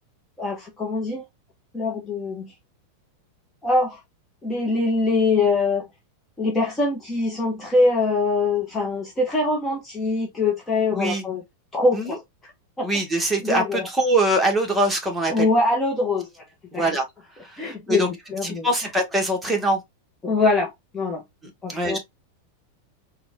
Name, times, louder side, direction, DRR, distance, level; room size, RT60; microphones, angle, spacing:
voice 1, 0.4-1.2 1.7-2.5 3.6-4.0 4.4-5.9 6.4-11.4 11.7-12.5 12.8-13.9 15.3-16.3 16.7-16.9 17.6-18.7 20.2-21.2 21.6-22.0, left 3 dB, 15° left, 0.9 m, -23 dB
voice 2, 10.9-11.2 11.9-12.2 12.8-15.5 16.7-17.0 17.4-18.1 18.4-19.8 21.7-22.0, right 1 dB, 5° right, 1.3 m, -23 dB
4.1 x 2.3 x 3.4 m
figure-of-eight pair, 90°, 0 cm